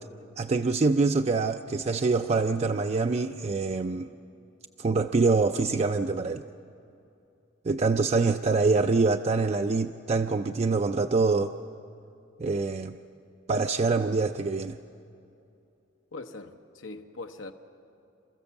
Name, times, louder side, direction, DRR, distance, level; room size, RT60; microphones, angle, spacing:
voice 1, 0.4-4.1 4.8-6.4 7.7-11.5 12.4-13.0 13.5-14.8, right 3 dB, 35° right, 7 dB, 0.4 m, -25 dB
voice 2, 16.1-17.5, left 3 dB, 80° left, 6 dB, 1.1 m, -41 dB
28.5 x 15.0 x 7.1 m, 2.7 s
head